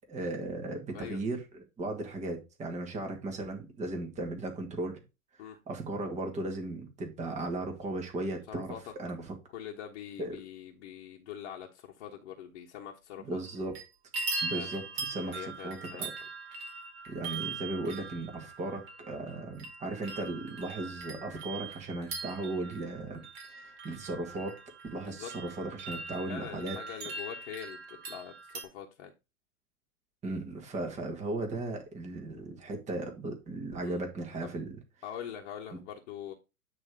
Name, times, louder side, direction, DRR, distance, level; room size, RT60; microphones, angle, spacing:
voice 1, 0.1-1.4 1.8-5.0 5.7-8.7 9.0-9.3 10.2-10.4 13.3-13.7 14.4-16.1 17.1-23.2 23.5-24.6 24.9-26.8 30.2-34.8 35.7-35.8, right 2 dB, 15° right, 1.9 m, -36 dB
voice 2, 8.5-8.9 9.5-13.4 14.5-14.7 15.1-16.3 24.9-25.3 26.3-29.1 33.8-34.0 34.4-34.5 35.0-36.3, left 9 dB, 45° left, 1.4 m, -43 dB
sound 1, 13.5-13.8 14.1-28.6, right 4 dB, 45° right, 2.5 m, -41 dB
9.5 x 3.3 x 5.1 m
figure-of-eight pair, 110°, 43 cm